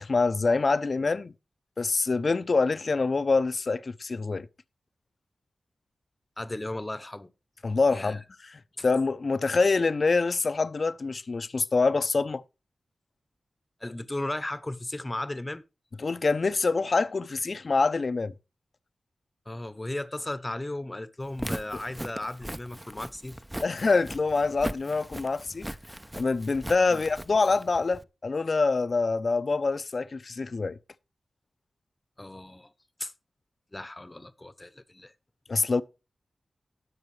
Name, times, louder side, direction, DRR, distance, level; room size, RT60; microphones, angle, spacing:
voice 1, 0.0-1.3 1.8-4.5 7.6-12.4 16.0-18.3 23.6-25.7 26.2-30.8 35.5-35.8, left 4 dB, 50° left, 0.6 m, -25 dB
voice 2, 6.4-7.3 7.9-8.2 13.8-15.6 19.5-23.4 26.9-27.0 32.2-32.7 33.0-33.1 33.7-35.1, left 1 dB, 20° left, 0.9 m, -35 dB
Walk footsteps, 21.2-28.0, right 1 dB, 10° right, 0.6 m, -39 dB
19.0 x 6.6 x 3.2 m
wide cardioid pair, 75°, 0 cm